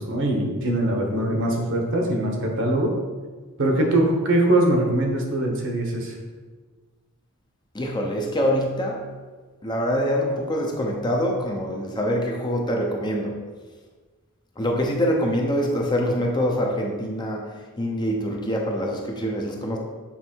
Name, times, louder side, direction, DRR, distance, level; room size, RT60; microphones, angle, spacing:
voice 1, 0.0-2.9 3.6-6.1, right 1 dB, 60° right, 1 dB, 1.1 m, -22 dB
voice 2, 7.7-9.0 9.6-13.4 14.6-19.8, equal, 20° left, 0 dB, 0.7 m, -25 dB
7.2 x 3.3 x 4.5 m, 1.4 s
head